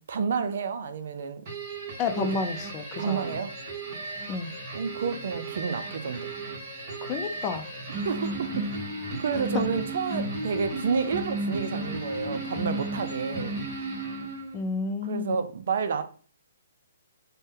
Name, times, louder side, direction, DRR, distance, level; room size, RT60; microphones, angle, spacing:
voice 1, 0.1-1.4 2.2-2.3 3.0-3.5 4.7-6.3 8.0-8.7 9.2-13.6 15.0-16.0, right 6 dB, 60° right, 0.4 m, -30 dB
sound 1, 1.5-14.6, right 2 dB, 35° right, 1.0 m, -34 dB
voice 2, 2.0-3.3 4.3-4.5 7.0-7.7 9.5-9.6 14.5-15.4, left 4 dB, 25° left, 0.3 m, -30 dB
2.6 x 2.2 x 3.5 m
hypercardioid pair, 150°, 0 cm